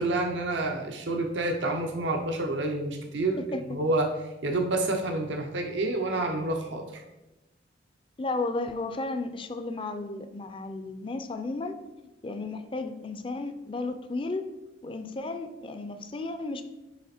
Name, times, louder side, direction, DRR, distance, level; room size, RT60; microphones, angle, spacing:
voice 1, 0.0-3.4 3.7-4.1 4.4-7.0, right 2 dB, 80° right, 4 dB, 0.8 m, -28 dB
voice 2, 8.2-14.4 14.8-16.6, left 3 dB, 30° left, 8 dB, 0.4 m, -34 dB
8.3 x 3.2 x 4.3 m, 1.0 s
head